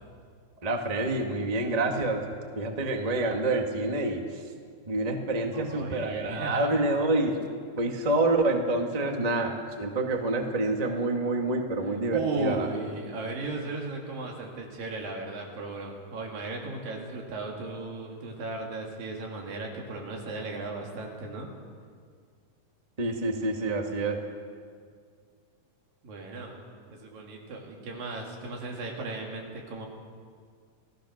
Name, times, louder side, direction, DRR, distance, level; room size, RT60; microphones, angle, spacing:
voice 1, 0.6-2.2 2.5-4.2 4.9-7.4 7.8-12.7 23.0-24.2, right 2 dB, 20° right, 2 dB, 1.2 m, -27 dB
voice 2, 5.5-6.7 11.8-21.5 26.0-26.6 26.9-29.9, right 3 dB, 80° right, 0 dB, 4.6 m, -36 dB
27.5 x 18.0 x 6.6 m, 2.1 s
omnidirectional pair, 3.9 m